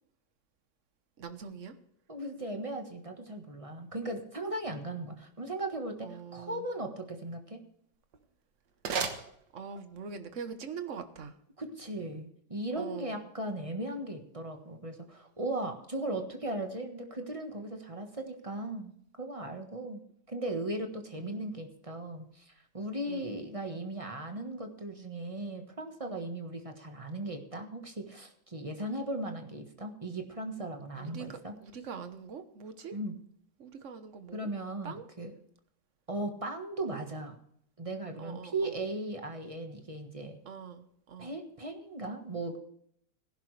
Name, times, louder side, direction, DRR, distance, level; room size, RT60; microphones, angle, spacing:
voice 1, 1.2-1.7 6.0-6.6 9.5-11.4 12.7-13.2 21.1-21.5 23.1-23.3 31.0-33.0 33.6-34.5 34.8-35.0 38.2-38.8 40.4-41.3, right 6 dB, 50° right, 9 dB, 1.3 m, -43 dB
voice 2, 2.1-7.6 11.6-20.0 20.3-31.5 32.9-33.2 34.3-35.3 36.1-37.4 37.8-40.4 41.2-42.6, right 1 dB, 20° right, 4 dB, 1.3 m, -37 dB
sound 1, 7.9-10.0, right 6 dB, 75° right, 1.8 m, -37 dB
17.0 x 11.0 x 3.3 m, 0.69 s
omnidirectional pair, 1.9 m